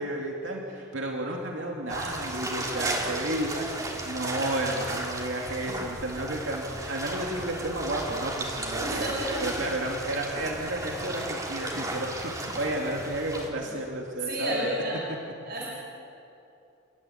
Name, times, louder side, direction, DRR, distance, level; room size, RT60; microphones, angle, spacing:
voice 1, 0.0-9.0 9.4-14.7, right 1 dB, 75° right, 0 dB, 2.5 m, -32 dB
sound 1, 1.9-13.5, right 1 dB, 20° right, 3.1 m, -34 dB
voice 2, 8.7-9.4 13.6-13.8 14.2-15.0 15.5-15.7, right 1 dB, 55° right, -4 dB, 5.9 m, -31 dB
29.5 x 13.0 x 9.8 m, 2.7 s
head